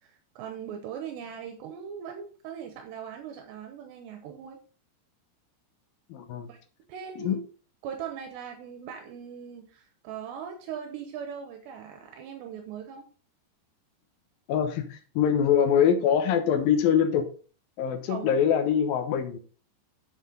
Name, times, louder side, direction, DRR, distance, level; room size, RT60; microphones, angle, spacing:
voice 1, 0.0-4.6 6.5-6.6 6.9-7.4 7.8-13.0 18.1-18.3, right 7 dB, 80° right, 3.0 m, -39 dB
voice 2, 6.1-6.5 7.2-7.4 14.5-17.3 17.8-19.4, left 8 dB, 70° left, 2.4 m, -24 dB
8.0 x 7.5 x 3.9 m
omnidirectional pair, 5.0 m